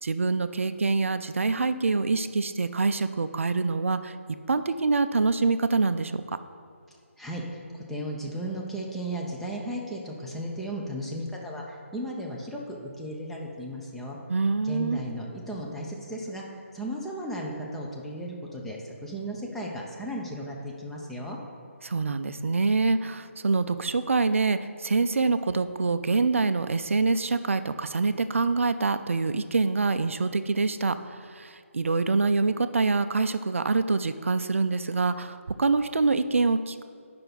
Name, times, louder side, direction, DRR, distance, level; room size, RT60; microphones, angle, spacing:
voice 1, 0.0-4.1 4.5-6.4 14.3-15.0 21.8-36.8, right 3 dB, 65° right, 11 dB, 0.4 m, -25 dB
voice 2, 7.2-14.2 14.6-21.4, right 1 dB, ahead, -3 dB, 0.6 m, -35 dB
8.9 x 5.7 x 4.0 m, 2.3 s
figure-of-eight pair, 150°, 8 cm